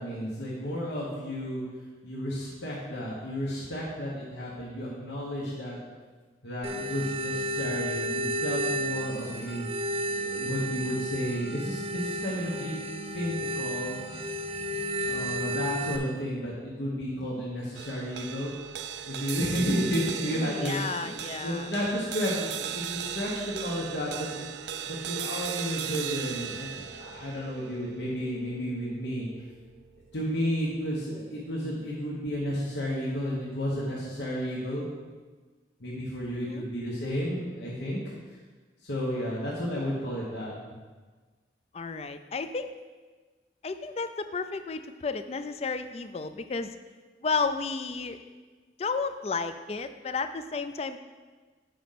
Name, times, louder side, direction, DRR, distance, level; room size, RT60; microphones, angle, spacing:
voice 1, 0.0-1.6 2.0-5.8 6.4-9.7 10.1-12.7 13.1-13.9 15.0-18.5 19.1-21.1 21.4-24.4 24.9-29.3 30.1-34.8 35.8-38.0 38.8-40.5, equal, 80° left, -6 dB, 1.4 m, -32 dB
sound 1, 6.6-16.0, right 1 dB, 35° right, 0.7 m, -32 dB
sound 2, 17.7-30.2, right 9 dB, 75° right, 0.4 m, -37 dB
voice 2, 20.3-21.7 36.3-36.7 41.7-42.7 43.6-46.8 47.2-48.2 48.8-51.0, left 4 dB, 35° left, 10 dB, 0.4 m, -32 dB
7.0 x 5.2 x 5.8 m, 1.4 s
head